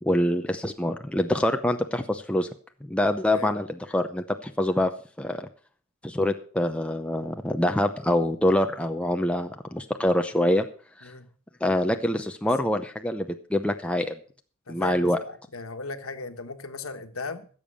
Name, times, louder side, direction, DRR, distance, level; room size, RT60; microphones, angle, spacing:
voice 1, 0.0-2.5 2.8-4.9 5.2-5.5 6.0-10.7 11.0-11.1 11.6-14.1 14.7-15.2, left 1 dB, 5° left, 5 dB, 0.6 m, -25 dB
voice 2, 14.7-15.1 15.5-17.5, left 3 dB, 85° left, 8 dB, 1.3 m, -36 dB
15.5 x 7.2 x 6.4 m, 0.43 s
head